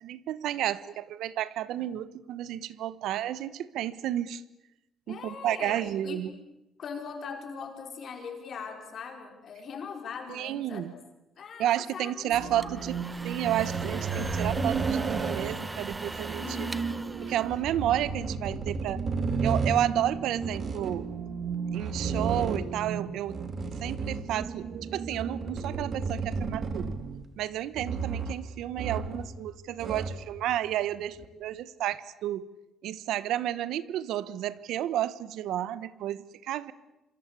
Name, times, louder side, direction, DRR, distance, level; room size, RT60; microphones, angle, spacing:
voice 1, 0.0-4.4 5.1-6.3 10.3-10.9 11.6-13.0 13.2-16.7 17.2-19.0 19.4-21.1 21.7-23.4 23.8-26.9 27.4-32.5 32.8-36.7, right 12 dB, 80° right, 17 dB, 1.2 m, -31 dB
voice 2, 5.1-6.2 6.8-11.0 11.4-12.7 16.4-17.0 17.5-17.7, left 5 dB, 45° left, 4 dB, 4.6 m, -41 dB
sound 1, 12.3-27.2, right 6 dB, 50° right, 1.9 m, -36 dB
sound 2, 12.4-18.1, right 2 dB, 10° right, 1.0 m, -41 dB
sound 3, 13.4-15.7 17.4-19.8 20.3-21.0 21.7-22.8 23.2-24.5 25.1-27.2 27.7-28.4 28.8-29.3 29.6-30.3 31.2-31.3, right 4 dB, 35° right, 2.6 m, -33 dB
27.0 x 25.5 x 8.4 m, 0.98 s
cardioid pair, 155°, 0 cm